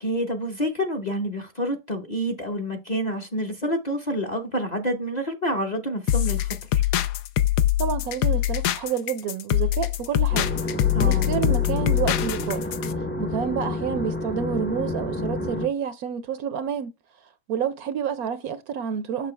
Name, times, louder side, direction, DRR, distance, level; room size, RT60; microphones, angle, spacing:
voice 1, 0.0-6.8 10.9-11.3, equal, 30° left, 0.9 m, -28 dB
sound 1, 6.1-12.9, left 12 dB, 75° left, 1.2 m, -23 dB
voice 2, 7.8-10.6 11.0-12.6 13.2-16.9 17.5-19.3, right 8 dB, 65° right, 1.0 m, -29 dB
sound 2, 10.3-15.7, left 2 dB, 15° left, 0.4 m, -30 dB
6.9 x 6.2 x 3.2 m
omnidirectional pair, 1.8 m